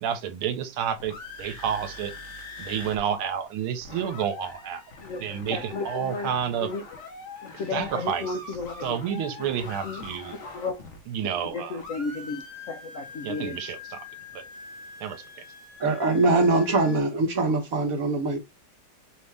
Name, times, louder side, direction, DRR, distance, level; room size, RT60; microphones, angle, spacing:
voice 1, 0.0-2.1 2.6-4.8 5.2-6.7 7.7-8.3 8.8-10.4 11.1-11.8 13.2-14.1 14.3-14.4 15.0-15.4, right 8 dB, 85° right, 1.7 m, -30 dB
sound 1, 0.7-3.0 3.3-3.4 3.6-11.5 11.8-17.0, left 4 dB, 40° left, 1.4 m, -43 dB
voice 2, 5.0-6.8 7.4-9.0 9.4-10.0 10.4-10.8 11.2-13.6, left 3 dB, 80° left, 0.7 m, -34 dB
voice 3, 15.8-18.4, right 2 dB, 50° right, 1.3 m, -22 dB
5.5 x 2.8 x 3.3 m
omnidirectional pair, 2.3 m